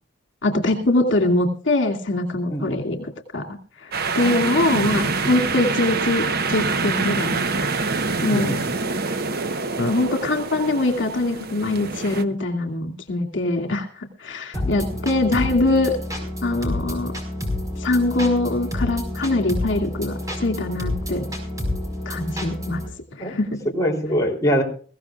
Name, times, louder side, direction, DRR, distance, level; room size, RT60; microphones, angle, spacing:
voice 1, 0.4-7.4 7.7-7.9 8.2-8.6 9.8-16.0 16.4-17.1 17.8-21.3 22.1-22.8 23.2-23.6, left 2 dB, 75° left, 3 dB, 2.6 m, -23 dB
sound 1, 3.9-12.2, right 4 dB, 55° right, 1.0 m, -25 dB
voice 2, 4.2-4.5 8.3-8.6 14.5-15.0 23.2-23.3 23.7-24.6, equal, 20° left, -1 dB, 3.4 m, -24 dB
sound 2, 14.5-22.9, left 1 dB, 20° right, 5.0 m, -29 dB
22.0 x 16.5 x 2.5 m, 0.42 s
head